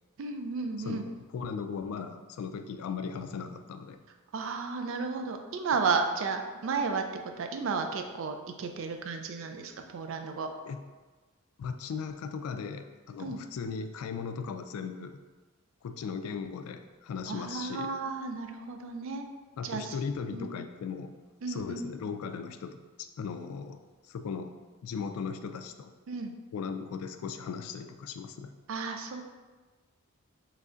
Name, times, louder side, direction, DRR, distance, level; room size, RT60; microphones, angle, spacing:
voice 1, 0.2-1.1 4.3-7.0 7.4-10.5 13.2-13.4 17.3-19.3 19.6-20.0 20.3-20.5 21.4-21.8 26.1-26.3 28.7-29.2, right 4 dB, 60° right, 5 dB, 0.3 m, -33 dB
voice 2, 0.8-4.0 10.6-10.8 11.6-15.2 15.8-17.9 19.6-21.1 21.5-23.8 24.1-24.6 24.8-25.9 26.5-28.5, left 5 dB, 80° left, 8 dB, 0.3 m, -37 dB
3.2 x 2.4 x 3.8 m, 1.3 s
head